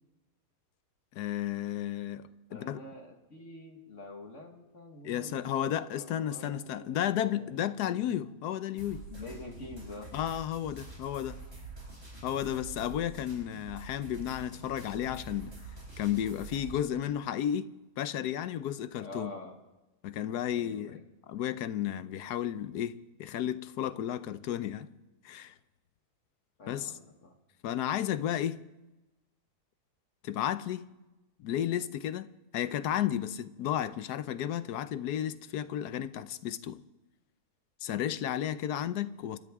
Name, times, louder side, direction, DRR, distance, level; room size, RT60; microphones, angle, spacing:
voice 1, 1.1-2.8 5.0-9.0 10.1-11.4 12.2-15.5 16.0-19.3 20.0-21.0 21.3-24.9 25.2-25.5 26.7-27.0 27.6-28.6 30.2-30.9 31.4-32.3 32.5-36.8 37.8-39.4, left 11 dB, 75° left, 1.2 m, -33 dB
voice 2, 2.5-8.3 9.1-10.1 19.0-19.5 20.5-21.0 26.6-27.3, left 2 dB, 50° left, 1.8 m, -46 dB
sound 1, 8.8-16.8, right 3 dB, 40° right, 5.3 m, -46 dB
26.5 x 13.0 x 3.6 m
omnidirectional pair, 1.7 m